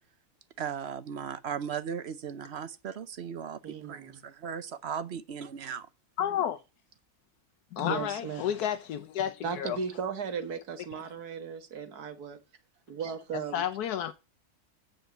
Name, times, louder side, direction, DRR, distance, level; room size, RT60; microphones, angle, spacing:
voice 1, 0.6-3.6 3.9-5.9, right 7 dB, 50° right, 1.0 m, -37 dB
voice 2, 3.6-4.2 7.8-8.5 9.4-12.4 12.9-13.6, right 6 dB, 85° right, 1.9 m, -36 dB
voice 3, 6.2-6.6 7.7-9.8 13.5-14.1, left 10 dB, 90° left, 1.3 m, -31 dB
9.0 x 5.4 x 7.8 m
omnidirectional pair, 1.6 m